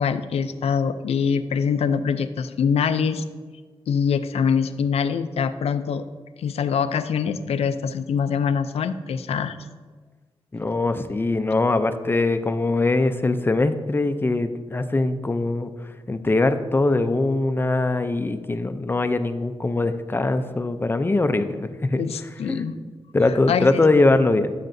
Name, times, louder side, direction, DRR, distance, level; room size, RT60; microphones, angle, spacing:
voice 1, 0.0-3.2 3.9-6.0 6.4-9.6 22.0-22.7 23.5-23.8, left 6 dB, 85° left, 11 dB, 0.4 m, -24 dB
voice 2, 10.5-22.0 22.5-24.5, left 2 dB, 20° left, 9 dB, 0.5 m, -22 dB
13.0 x 6.6 x 2.6 m, 1.5 s
wide cardioid pair, 105°, 10 cm